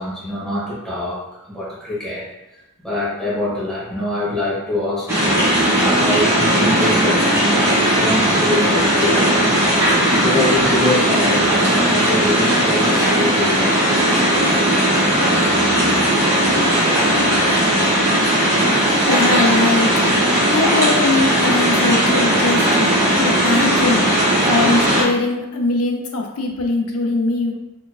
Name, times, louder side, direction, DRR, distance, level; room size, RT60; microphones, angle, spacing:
voice 1, 0.0-2.2 2.8-5.1 5.5-9.6 10.2-14.1, left 1 dB, ahead, -8 dB, 1.5 m, -24 dB
sound 1, 5.1-25.0, right 1 dB, 15° right, 1.4 m, -17 dB
voice 2, 19.0-19.9 20.5-24.1 24.5-27.5, left 3 dB, 75° left, 1 dB, 0.5 m, -21 dB
4.4 x 3.4 x 2.3 m, 0.92 s
head